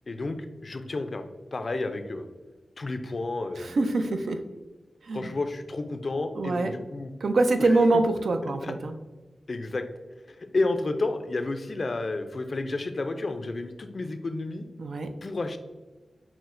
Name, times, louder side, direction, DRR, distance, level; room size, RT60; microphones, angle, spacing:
voice 1, 0.1-2.2 2.8-3.7 5.1-7.1 7.6-8.0 8.6-8.8 9.5-9.9 10.3-14.6 15.2-15.6, left 2 dB, 60° left, 8 dB, 0.3 m, -31 dB
voice 2, 3.6-4.4 5.0-5.3 6.4-6.7 7.2-8.9 14.8-15.1, right 2 dB, 85° right, 6 dB, 0.3 m, -24 dB
5.9 x 2.0 x 2.5 m, 1.2 s
cardioid pair, 45°, 0 cm